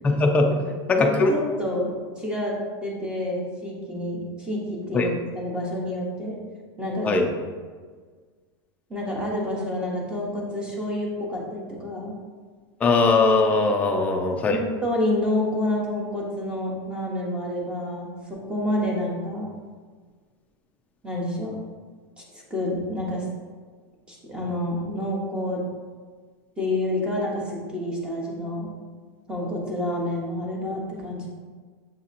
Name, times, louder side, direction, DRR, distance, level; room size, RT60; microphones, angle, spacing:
voice 1, 0.0-0.5 0.9-1.3 4.9-5.1 7.0-7.3 12.8-14.6, left 3 dB, 10° left, 2 dB, 0.3 m, -20 dB
voice 2, 1.0-2.6 2.8-6.4 6.8-7.1 8.9-12.1 14.5-19.5 21.0-21.5 22.3-23.2 24.1-25.6 26.6-28.7 29.3-31.3, left 1 dB, 5° right, -3 dB, 0.7 m, -28 dB
7.2 x 2.7 x 2.5 m, 1.5 s
supercardioid pair, 170°, 14 cm